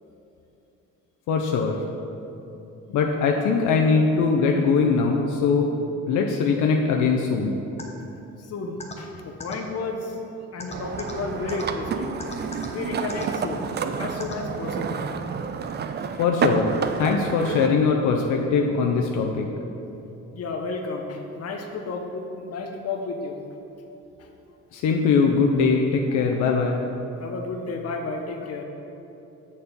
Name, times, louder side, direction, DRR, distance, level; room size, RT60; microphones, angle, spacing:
voice 1, 1.3-1.7 2.9-5.7 6.1-7.6 16.2-19.5 24.7-26.8, left 5 dB, 80° left, 1 dB, 0.6 m, -21 dB
sound 1, 7.8-7.9 8.8-8.9 9.4-9.5 10.6-11.1 11.5-11.6 12.2-12.7 13.1-13.3 14.2-14.3, left 3 dB, 20° left, 0.9 m, -35 dB
voice 2, 8.4-10.2 10.5-13.7 14.0-15.1 16.0-16.1 20.3-23.4 24.2-24.3 26.1-26.4 27.2-28.6, left 3 dB, 55° left, 3 dB, 0.9 m, -32 dB
sound 2, 10.7-17.7, right 6 dB, 35° right, 0.4 m, -29 dB
6.7 x 4.2 x 5.2 m, 3.0 s
cardioid pair, 90°, 30 cm